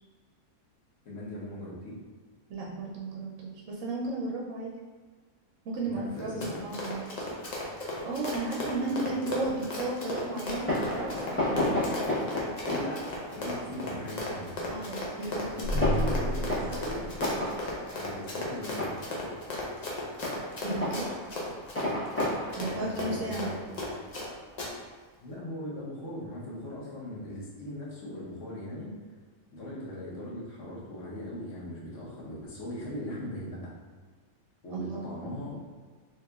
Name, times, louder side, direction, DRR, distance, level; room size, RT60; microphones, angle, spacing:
voice 1, 1.0-2.0 5.8-6.6 11.7-12.1 12.6-13.0 13.3-14.5 15.5-17.0 17.9-18.9 22.5-23.6 25.2-28.9 29.5-33.7 34.6-35.6, left 1 dB, 60° left, -6 dB, 1.2 m, -39 dB
voice 2, 2.5-4.7 5.6-7.1 8.0-11.6 14.7-15.8 20.6-21.1 22.6-23.6 34.7-35.1, right 2 dB, 70° right, -3 dB, 0.9 m, -34 dB
Run, 6.1-24.3 24.6-24.7, left 2 dB, 45° left, 0.5 m, -36 dB
Fireworks, 10.4-24.6, left 1 dB, 10° left, 0.9 m, -34 dB
sound 1, 15.6-17.9, equal, 80° left, 1.2 m, -31 dB
3.9 x 2.9 x 2.3 m, 1.5 s
omnidirectional pair, 1.5 m